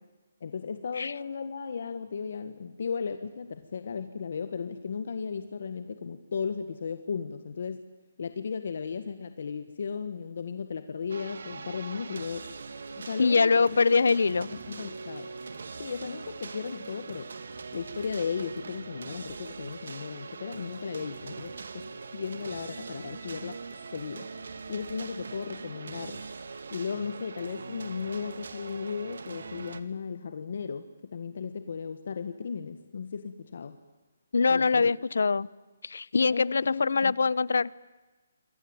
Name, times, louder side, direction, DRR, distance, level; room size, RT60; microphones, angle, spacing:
voice 1, 0.4-7.8 8.2-12.5 13.0-13.8 14.4-15.3 15.8-17.3 17.7-23.6 23.9-24.3 24.7-26.2 26.7-33.8 34.5-34.9 36.3-37.1, left 6 dB, 55° left, 10 dB, 1.7 m, -35 dB
sound 1, 11.1-29.8, right 4 dB, 70° right, 2.2 m, -42 dB
voice 2, 13.2-14.5 34.3-35.5 35.8-37.7, left 4 dB, 80° left, 23 dB, 0.9 m, -23 dB
28.0 x 23.0 x 9.0 m, 1.2 s
hypercardioid pair, 165°, 0 cm